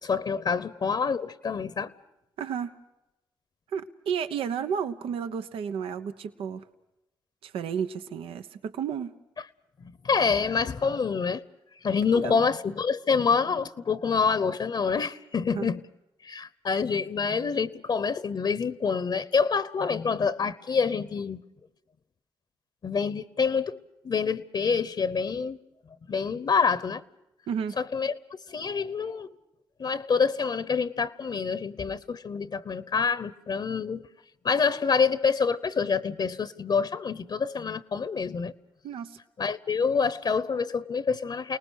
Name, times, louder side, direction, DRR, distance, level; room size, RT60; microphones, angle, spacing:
voice 1, 0.0-1.9 9.8-11.4 11.7-15.8 16.2-21.4 22.8-25.6 26.1-27.0 27.8-28.1 28.5-29.4 29.8-34.1 34.4-38.5 39.4-41.6, left 5 dB, 55° left, 1.0 m, -27 dB
voice 2, 2.4-2.7 3.7-6.6 7.4-9.1 12.2-12.4 15.5-15.7 27.5-27.7 38.8-39.2, right 7 dB, 90° right, 1.0 m, -32 dB
29.0 x 19.5 x 6.5 m
cardioid pair, 65°, 9 cm